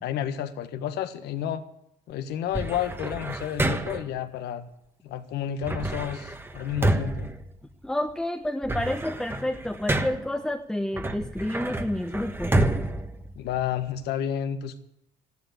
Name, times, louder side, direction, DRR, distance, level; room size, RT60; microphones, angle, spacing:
voice 1, 0.0-1.6 2.1-4.6 5.0-7.3 13.3-14.8, left 9 dB, 80° left, 10 dB, 1.5 m, -31 dB
sound 1, 2.5-4.2 5.6-8.1 8.5-10.4 10.9-14.0, right 1 dB, 15° right, 1.3 m, -29 dB
voice 2, 7.8-12.5, left 1 dB, 5° left, 5 dB, 0.9 m, -29 dB
14.5 x 11.5 x 8.2 m, 0.79 s
cardioid pair, 110°, 17 cm